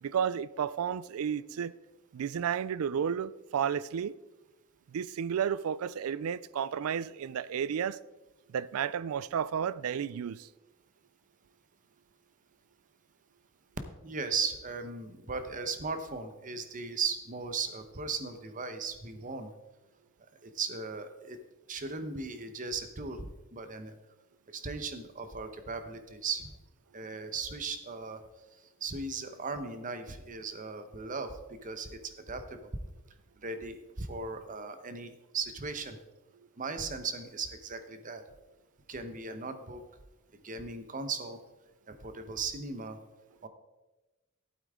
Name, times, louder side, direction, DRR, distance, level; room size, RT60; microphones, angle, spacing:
voice 1, 0.0-1.7 2.1-4.1 4.9-8.0 8.5-10.5, right 8 dB, 90° right, 0.4 m, -32 dB
voice 2, 14.0-19.5 20.4-21.4 21.7-23.9 24.5-26.5 26.9-28.2 28.8-32.7 33.4-36.0 36.6-38.2 38.9-39.8 40.3-41.4 41.9-43.0 43.4-43.5, right 4 dB, 40° right, 0.9 m, -37 dB
12.0 x 8.6 x 3.6 m
head